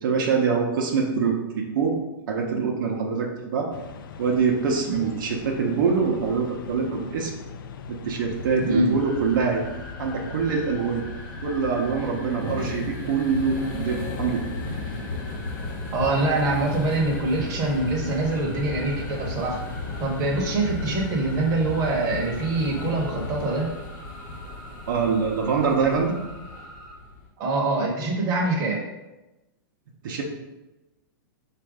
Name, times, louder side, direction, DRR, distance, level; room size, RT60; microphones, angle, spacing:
voice 1, 0.0-2.0 2.3-3.7 4.2-7.3 7.9-9.6 10.0-11.0 11.4-14.5 24.9-26.2 30.0-30.2, right 5 dB, 65° right, 0 dB, 0.8 m, -24 dB
sound 1, 3.7-23.6, left 5 dB, 70° left, 0.4 m, -40 dB
sound 2, 8.2-27.3, left 2 dB, 35° left, 1.1 m, -36 dB
voice 2, 8.6-8.9 15.9-19.6 20.0-23.7 27.4-28.8, right 2 dB, 30° right, -2 dB, 0.9 m, -24 dB
sound 3, 9.0-26.9, left 2 dB, 5° left, 0.7 m, -45 dB
4.2 x 2.5 x 4.8 m, 1.0 s
hypercardioid pair, 150°, 12 cm